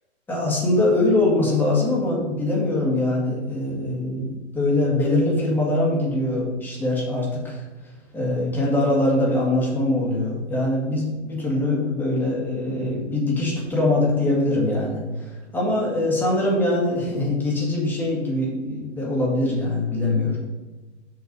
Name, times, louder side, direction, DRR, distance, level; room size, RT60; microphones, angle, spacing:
voice 1, 0.3-7.6 8.1-20.4, left 2 dB, 5° left, -4 dB, 1.8 m, -23 dB
7.0 x 6.3 x 5.2 m, 1.2 s
hypercardioid pair, 165°, 34 cm